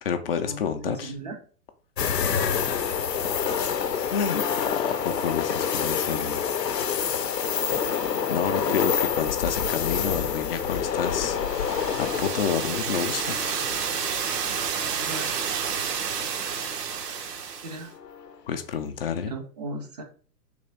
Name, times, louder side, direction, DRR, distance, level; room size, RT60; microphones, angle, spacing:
voice 1, 0.0-1.1 3.3-3.4 4.1-7.0 8.3-13.6 18.5-19.3, left 7 dB, 40° left, 0.4 m, -30 dB
voice 2, 0.8-1.4 2.3-2.5 8.5-8.7 15.0-15.4 17.6-17.9 19.2-20.0, right 2 dB, 30° right, 0.4 m, -36 dB
sound 1, 2.0-15.0 15.4-15.5 17.9-18.3, left 7 dB, 85° left, 0.6 m, -27 dB
sound 2, 11.3-17.9, right 7 dB, 75° right, 0.7 m, -30 dB
3.4 x 2.9 x 4.0 m
figure-of-eight pair, 110°, 48 cm